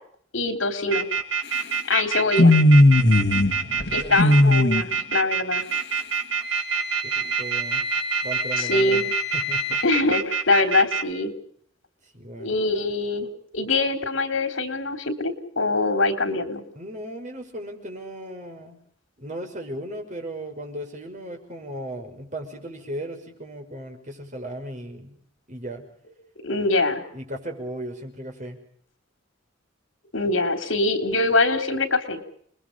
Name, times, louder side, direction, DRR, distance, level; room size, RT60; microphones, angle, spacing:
voice 1, 0.3-1.1 1.9-2.6 3.9-5.6 8.6-9.0 9.8-11.3 12.4-16.6 26.4-27.0 30.1-32.2, left 2 dB, 80° left, 7 dB, 3.7 m, -23 dB
sound 1, 0.9-11.0, right 6 dB, 80° right, 3.5 m, -26 dB
sound 2, 2.4-3.5 3.8-4.8, left 1 dB, 60° left, 2.0 m, -16 dB
voice 2, 3.6-4.2 7.0-7.8 8.2-9.1 9.3-9.8 12.1-12.5 16.7-18.8 19.2-25.2 25.5-25.9 27.1-28.6, right 1 dB, 40° right, 3 dB, 6.1 m, -36 dB
Wind instrument woodwind instrument, 6.4-9.9, left 4 dB, ahead, 7.5 m, -31 dB
30.0 x 21.5 x 5.5 m, 0.64 s
head